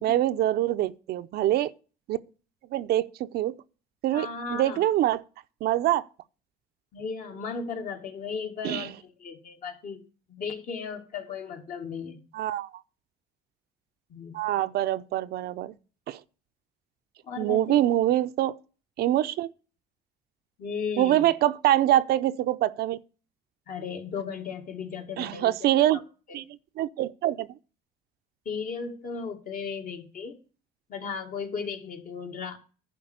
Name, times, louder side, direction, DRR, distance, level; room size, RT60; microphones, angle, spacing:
voice 1, 0.0-1.7 2.1-2.2 2.7-3.6 4.0-5.2 5.6-6.0 8.6-8.9 12.3-12.7 14.3-15.7 16.1-16.2 17.4-18.6 19.0-19.5 21.0-23.0 25.2-26.0 26.3-26.4 26.8-27.5, right 13 dB, 70° right, 0.6 m, -24 dB
voice 2, 4.1-4.8 6.9-10.0 10.3-12.2 14.1-14.4 17.2-17.8 20.6-21.3 23.7-25.7 26.3-26.4 28.5-30.4 30.9-32.6, left 5 dB, 55° left, 2.1 m, -36 dB
11.0 x 4.6 x 8.0 m
cardioid pair, 110°, 17 cm